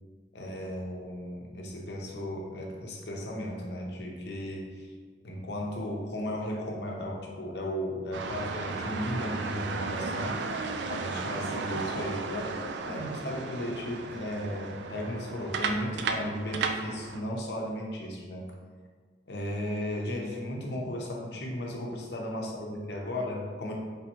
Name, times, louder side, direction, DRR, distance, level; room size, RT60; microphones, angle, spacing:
voice 1, 0.3-4.9 5.2-10.4 10.9-18.5 19.3-23.7, left 1 dB, 65° left, -1 dB, 0.8 m, -35 dB
sound 1, 8.1-17.2, right 4 dB, 80° right, 0.4 m, -34 dB
4.4 x 3.3 x 3.0 m, 1.5 s
head